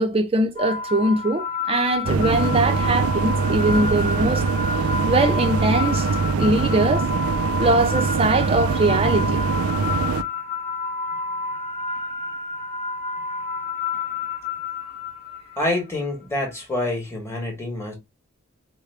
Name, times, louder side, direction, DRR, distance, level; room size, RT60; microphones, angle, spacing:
voice 1, 0.0-4.4 5.0-6.1 6.4-7.1 7.6-9.4, right 2 dB, 25° right, 0.7 m, -21 dB
sound 1, 0.6-15.7, left 3 dB, 35° left, 1.0 m, -29 dB
sound 2, 2.0-10.2, right 5 dB, 75° right, 0.4 m, -23 dB
voice 2, 15.6-18.0, left 1 dB, 10° left, 1.3 m, -26 dB
5.0 x 2.2 x 3.2 m
head